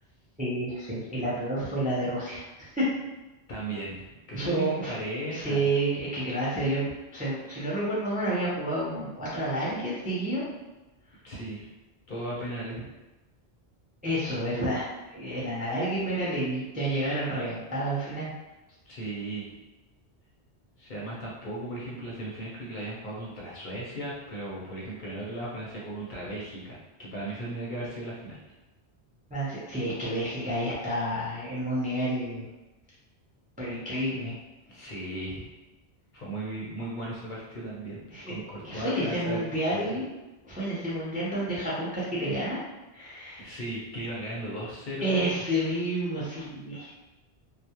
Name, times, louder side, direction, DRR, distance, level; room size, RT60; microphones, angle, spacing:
voice 1, 0.4-2.9 4.3-4.9 5.3-6.8 7.1-10.4 14.0-18.3 29.3-32.4 33.6-34.3 34.8-34.9 38.1-38.3 38.6-40.1 40.4-42.6 42.9-43.5 45.0-46.9, right 1 dB, 10° right, -8 dB, 0.4 m, -30 dB
voice 2, 3.5-5.7 11.2-11.7 12.1-12.9 18.9-19.6 20.8-28.4 34.7-35.5 36.1-38.0 38.3-39.4 39.7-40.0 43.4-45.2, right 1 dB, 55° left, -5 dB, 0.7 m, -36 dB
2.3 x 2.0 x 2.8 m, 1.1 s
omnidirectional pair, 1.1 m